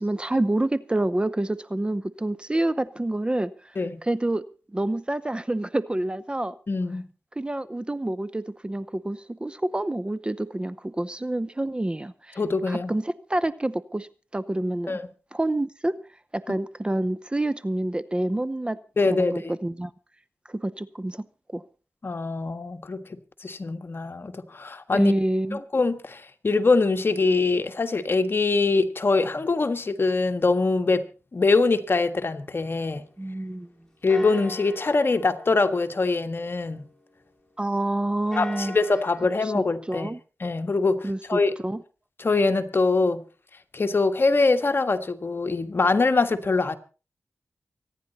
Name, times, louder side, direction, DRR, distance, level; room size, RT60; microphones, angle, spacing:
voice 1, 0.0-3.5 4.0-4.4 4.7-6.5 7.4-12.4 12.7-14.1 14.3-15.0 15.3-15.9 16.3-18.8 19.2-19.9 20.5-21.2 21.5-21.6 24.9-25.6 33.2-33.7 37.6-38.8 39.3-40.2 41.0-41.8, right 1 dB, 20° right, 0.8 m, -27 dB
voice 2, 6.7-7.0 12.4-12.9 14.9-15.1 19.0-19.5 22.0-25.1 25.5-31.1 31.3-33.0 34.0-36.8 38.3-40.1 40.4-41.5 42.2-43.2 43.7-46.8, left 3 dB, 50° left, 1.5 m, -23 dB
sound 1, 31.9-33.7 34.1-37.6 38.1-39.3, left 2 dB, 10° left, 3.5 m, -43 dB
24.5 x 10.0 x 4.2 m
cardioid pair, 65°, 5 cm